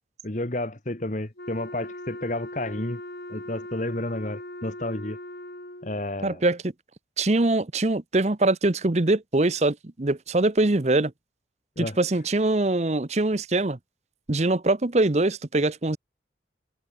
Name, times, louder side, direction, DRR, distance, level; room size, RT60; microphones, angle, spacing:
voice 1, 0.2-3.0 3.3-5.2 5.8-6.4 11.8-12.0, left 1 dB, 45° left, 1.6 m, -31 dB
Wind instrument woodwind instrument, 1.4-6.0, left 1 dB, 60° left, 4.2 m, -39 dB
voice 2, 6.2-6.6 7.2-11.1 11.8-13.8 14.3-16.0, right 2 dB, 40° right, 0.8 m, -23 dB
head